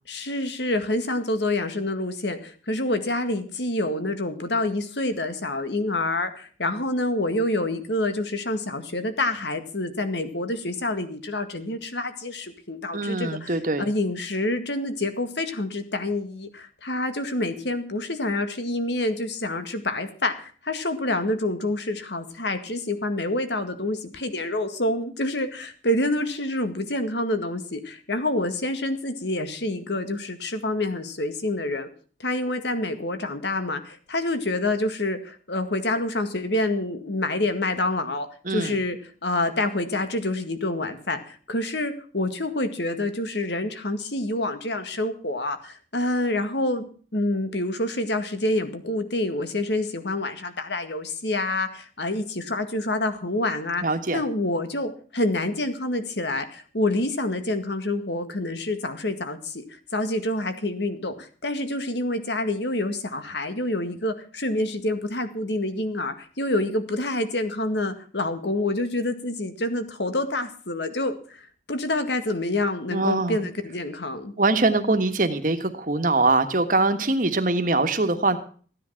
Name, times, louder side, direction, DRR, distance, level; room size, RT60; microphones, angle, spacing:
voice 1, 0.1-31.9 32.2-39.0 39.2-46.9 47.1-53.8 54.1-74.3, left 2 dB, 70° left, 9 dB, 2.0 m, -27 dB
voice 2, 12.9-13.9 38.4-38.8 53.8-54.2 72.9-73.5 74.4-78.4, right 2 dB, 45° right, 8 dB, 1.5 m, -23 dB
15.0 x 10.0 x 5.8 m, 0.42 s
head